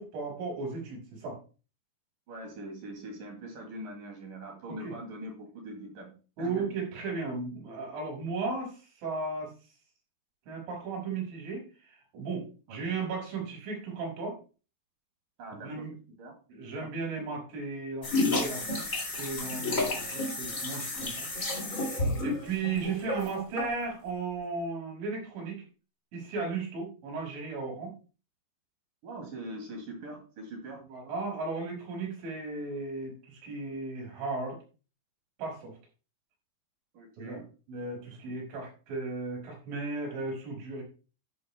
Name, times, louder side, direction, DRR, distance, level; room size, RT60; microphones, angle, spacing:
voice 1, 0.0-1.4 4.7-4.9 6.4-9.5 10.5-14.4 15.6-15.9 16.5-18.9 19.2-21.3 22.2-25.6 26.1-27.9 30.9-34.6 35.4-35.8 37.2-37.4 37.7-40.8, right 4 dB, 70° right, -1 dB, 7.5 m, -35 dB
voice 2, 2.3-6.7 12.7-12.8 15.4-15.9 16.2-16.3 16.8-16.9 29.0-30.9 36.9-37.5 38.1-38.2, right 1 dB, 50° right, 2 dB, 3.5 m, -42 dB
sound 1, 18.0-23.9, left 2 dB, 70° left, 0.7 m, -31 dB
12.5 x 11.5 x 2.2 m, 0.35 s
omnidirectional pair, 5.9 m